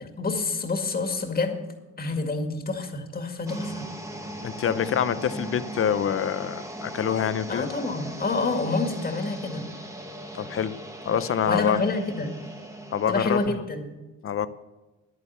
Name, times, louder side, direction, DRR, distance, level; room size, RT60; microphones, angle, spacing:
voice 1, 0.0-1.6 2.0-3.8 7.5-9.7 11.5-12.4 13.1-14.0, left 3 dB, 30° left, 4 dB, 2.0 m, -28 dB
sound 1, 3.5-13.5, right 1 dB, 10° right, 1.5 m, -38 dB
voice 2, 4.4-7.7 10.3-10.8 11.1-11.8 12.9-13.5 14.2-14.5, left 8 dB, 45° left, 14 dB, 0.7 m, -26 dB
10.5 x 9.4 x 6.9 m, 1.1 s
cardioid pair, 90°, 30 cm